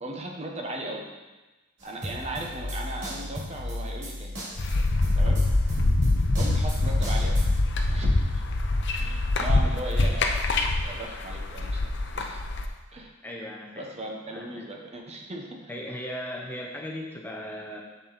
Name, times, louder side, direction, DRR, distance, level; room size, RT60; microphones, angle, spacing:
voice 1, 0.0-1.1 1.8-4.3 5.1-5.4 6.4-7.4 7.9-8.3 9.0-10.4 10.8-12.4 12.9-13.1 13.8-15.7, right 1 dB, 30° right, 1 dB, 1.0 m, -37 dB
sound 1, 1.8-7.7, left 1 dB, 65° right, 2.8 m, -35 dB
sound 2, 4.6-12.7, left 2 dB, 60° left, 0.7 m, -24 dB
voice 2, 13.2-13.9 14.3-14.7 15.7-17.8, equal, 10° left, -1 dB, 0.7 m, -37 dB
7.3 x 7.1 x 4.1 m, 1.2 s
head